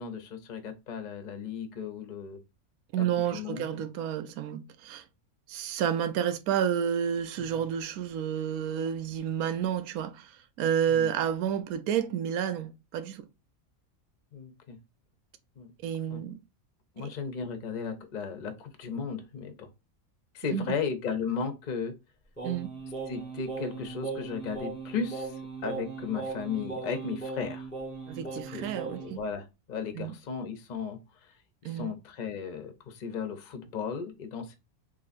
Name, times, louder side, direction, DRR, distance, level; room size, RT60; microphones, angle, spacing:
voice 1, 0.0-2.4 3.3-3.8 7.4-7.6 10.9-11.1 14.3-14.8 15.6-15.7 16.1-16.2 17.0-19.7 20.3-21.9 23.1-25.3 25.6-27.7 28.5-28.7 29.0-31.0 31.6-34.6, left 6 dB, 45° left, 0.6 m, -35 dB
voice 2, 2.9-5.0 5.5-13.2 15.8-16.4 17.0-17.1 20.5-20.8 22.4-22.7 28.1-29.2 29.9-30.1 31.6-31.9, right 9 dB, 85° right, 1.1 m, -30 dB
Singing, 22.4-29.2, right 3 dB, 5° left, 1.1 m, -38 dB
3.8 x 3.1 x 2.4 m
omnidirectional pair, 1.5 m